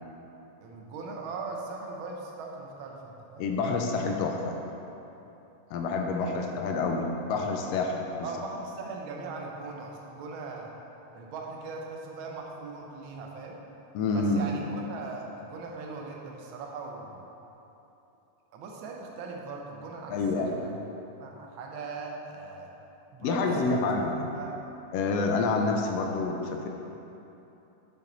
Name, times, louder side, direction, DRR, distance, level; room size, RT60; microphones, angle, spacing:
voice 1, 0.6-3.5 6.2-6.4 8.2-10.7 11.1-13.6 14.1-17.2 18.5-20.8 21.2-22.7 23.1-23.9 24.3-24.6, right 4 dB, 90° right, -1 dB, 1.1 m, -40 dB
voice 2, 3.4-4.6 5.7-8.3 13.9-14.5 20.1-20.6 23.2-24.3 24.9-26.7, left 3 dB, 80° left, 2 dB, 1.5 m, -28 dB
6.8 x 6.4 x 3.9 m, 2.9 s
omnidirectional pair, 3.3 m